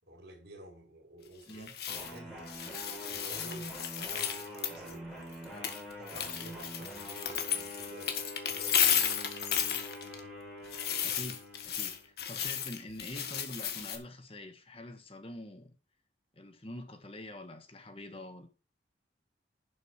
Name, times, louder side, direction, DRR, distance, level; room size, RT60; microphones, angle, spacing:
voice 1, 0.0-1.7 1.9-2.6 3.1-3.7 4.0-5.7 6.0-8.2 8.4-8.9, right 1 dB, 65° right, 4.9 m, -52 dB
sound 1, 1.5-2.2 2.5-4.9 5.3-10.2 10.7-14.0, left 8 dB, 60° left, 1.7 m, -33 dB
sound 2, 1.9-12.1, equal, ahead, 4.2 m, -45 dB
voice 2, 11.0-15.7 16.3-18.5, left 1 dB, 30° left, 1.4 m, -45 dB
11.0 x 6.6 x 4.7 m
head